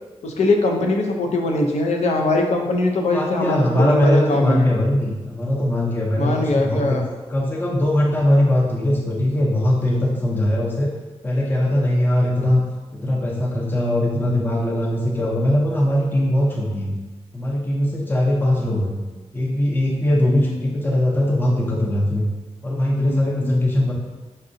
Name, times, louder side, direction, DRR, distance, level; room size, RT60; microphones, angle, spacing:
voice 1, 0.2-4.7 6.2-7.1 20.3-20.4 23.0-23.6, left 2 dB, 85° left, 2 dB, 0.5 m, -21 dB
voice 2, 3.0-7.0 7.3-10.9 11.2-12.6 12.9-16.9 17.3-19.0 19.3-22.3 22.6-23.9, left 1 dB, 20° left, -3 dB, 0.6 m, -20 dB
5.2 x 2.6 x 2.5 m, 1.2 s
wide cardioid pair, 95°, 11 cm